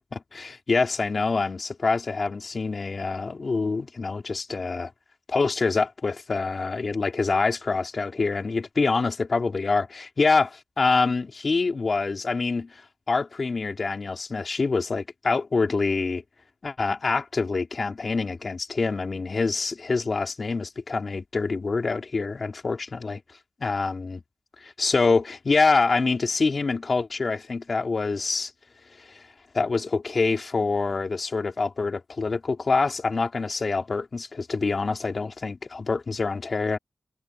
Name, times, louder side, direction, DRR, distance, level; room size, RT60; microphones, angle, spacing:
voice 1, 0.3-4.9 5.3-16.2 16.6-23.2 23.6-24.2 24.6-28.5 29.0-29.2 29.5-36.8, left 4 dB, 50° left, 4.6 m, -26 dB
wide cardioid pair, 125°, 0 cm